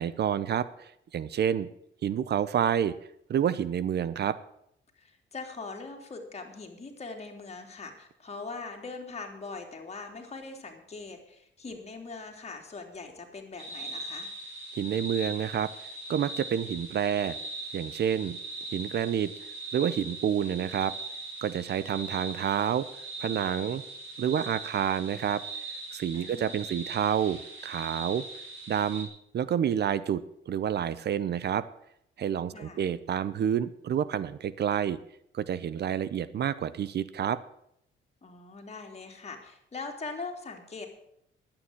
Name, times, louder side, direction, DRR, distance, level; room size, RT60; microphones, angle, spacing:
voice 1, 0.0-1.7 2.0-3.0 3.3-4.4 14.7-15.7 16.1-17.4 17.7-18.4 18.7-19.3 19.7-20.9 21.4-22.9 23.2-23.8 24.2-25.4 25.9-28.2 28.7-29.1 29.3-31.7 32.2-35.0 35.3-37.4, right 9 dB, 55° right, 17 dB, 0.7 m, -28 dB
voice 2, 5.0-14.3 26.1-26.8 32.5-32.9 38.2-40.9, left 4 dB, 35° left, 3 dB, 3.3 m, -41 dB
sound 1, 13.6-29.0, right 2 dB, 80° right, 5.3 m, -40 dB
11.5 x 8.9 x 8.7 m, 0.75 s
cardioid pair, 90°, 20 cm